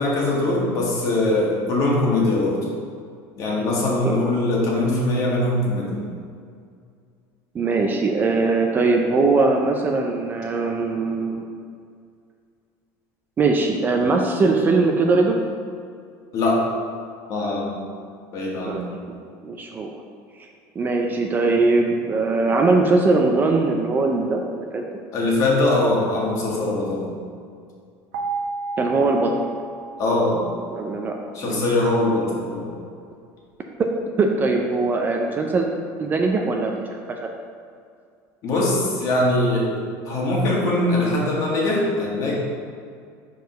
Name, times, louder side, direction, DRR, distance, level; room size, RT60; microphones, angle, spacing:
voice 1, 0.0-2.6 3.4-6.0 16.3-16.6 17.3-17.8 18.3-18.9 25.1-27.1 30.0-30.4 31.3-32.7 38.4-39.7 40.0-42.3, left 2 dB, 40° left, -3 dB, 1.5 m, -21 dB
voice 2, 7.5-11.4 13.4-15.4 18.7-18.9 19.4-19.9 20.8-24.8 28.8-29.3 30.7-31.2 31.4-31.6 33.8-33.9 34.2-35.7 36.0-37.0, right 3 dB, 20° right, 2 dB, 0.4 m, -21 dB
sound 1, 28.1-31.1, right 3 dB, 90° right, 1.0 m, -32 dB
4.6 x 4.6 x 5.2 m, 2.2 s
cardioid pair, 155°, 8 cm